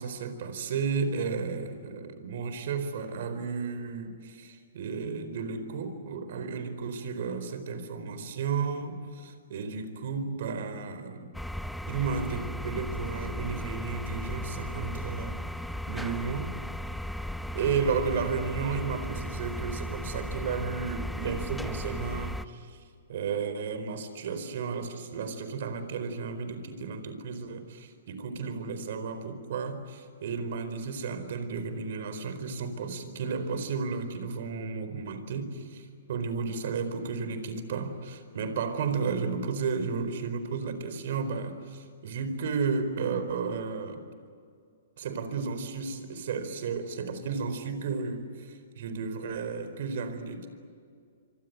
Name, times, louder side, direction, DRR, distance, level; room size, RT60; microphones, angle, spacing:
voice 1, 0.0-11.3 11.9-15.4 15.9-16.5 17.5-22.8 23.1-44.0 45.0-50.5, right 5 dB, 60° right, 10 dB, 4.5 m, -33 dB
sound 1, 11.3-22.5, equal, ahead, 0.8 m, -36 dB
25.5 x 25.5 x 8.1 m, 2.2 s
hypercardioid pair, 150°, 0 cm